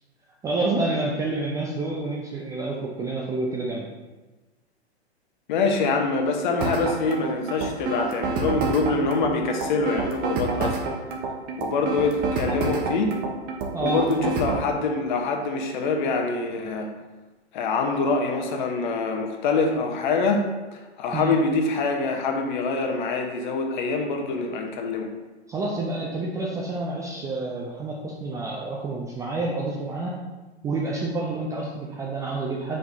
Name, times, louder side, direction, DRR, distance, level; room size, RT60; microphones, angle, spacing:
voice 1, 0.4-3.9 13.7-14.0 21.1-21.3 25.5-30.2 30.6-32.8, right 2 dB, 10° right, -3 dB, 0.4 m, -28 dB
voice 2, 5.5-10.8 11.6-13.1 13.8-16.9 17.5-20.5 20.7-25.1, left 3 dB, 45° left, 3 dB, 1.0 m, -25 dB
sound 1, 6.6-14.6, right 4 dB, 25° right, 0.9 m, -28 dB
8.0 x 5.1 x 2.7 m, 1.2 s
figure-of-eight pair, 105°, 33 cm